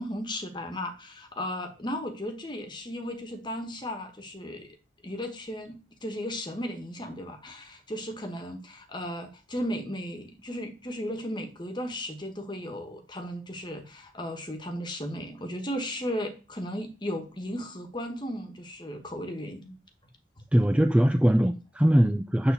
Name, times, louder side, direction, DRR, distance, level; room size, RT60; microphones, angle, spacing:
voice 1, 0.0-4.7 5.0-19.8, equal, 25° left, 1.4 m, -35 dB
voice 2, 20.5-22.5, equal, 5° right, 0.4 m, -21 dB
9.2 x 3.9 x 6.9 m
head